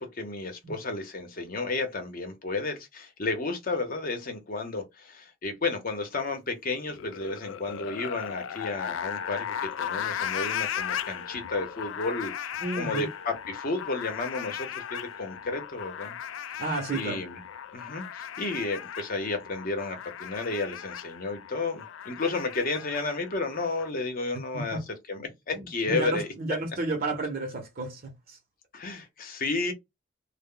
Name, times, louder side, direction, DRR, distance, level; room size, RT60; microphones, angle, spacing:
voice 1, 0.0-12.5 12.8-16.1 16.5-16.6 16.9-17.4 17.7-24.8 25.1-26.3 28.7-29.7, left 3 dB, 45° left, 0.8 m, -32 dB
sound 1, 6.9-23.9, left 9 dB, 80° left, 0.3 m, -37 dB
voice 2, 12.6-13.1 16.6-17.2 24.5-24.8 25.5-28.4, right 2 dB, 50° right, 0.7 m, -32 dB
2.1 x 2.0 x 3.6 m
head